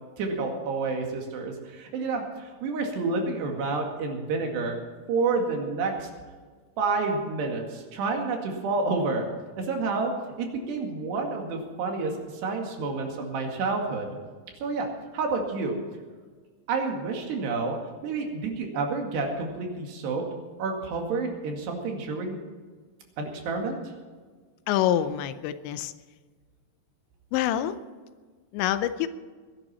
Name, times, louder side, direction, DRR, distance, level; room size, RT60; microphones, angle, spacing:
voice 1, 0.2-4.8 5.1-6.1 6.8-9.3 9.6-10.1 10.4-12.1 12.4-14.1 14.6-14.9 15.1-15.8 16.7-17.8 18.0-20.2 20.6-22.4 23.2-23.8, right 3 dB, 70° right, 2 dB, 4.2 m, -29 dB
voice 2, 24.7-25.9 27.3-27.7 28.5-29.1, left 11 dB, 85° left, 12 dB, 3.0 m, -26 dB
21.0 x 11.5 x 4.3 m, 1.5 s
omnidirectional pair, 5.1 m